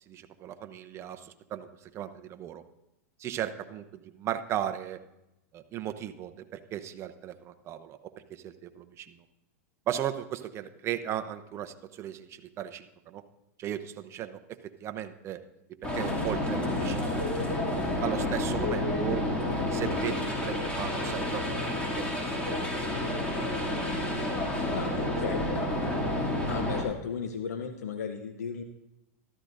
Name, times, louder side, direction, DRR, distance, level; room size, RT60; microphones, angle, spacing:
voice 1, 0.1-1.7 1.9-2.6 3.2-5.0 5.5-8.0 8.3-9.2 9.9-13.2 13.6-15.4 16.0-17.3 18.0-19.2 19.7-21.4 21.8-22.1 22.5-22.6, right 11 dB, 35° right, 8 dB, 0.8 m, -36 dB
sound 1, 15.8-26.8, left 1 dB, 15° left, 2.7 m, -30 dB
voice 2, 24.7-25.4 26.5-28.6, left 6 dB, 85° left, 6 dB, 0.8 m, -35 dB
14.0 x 13.0 x 2.6 m, 0.91 s
hypercardioid pair, 115°, 8 cm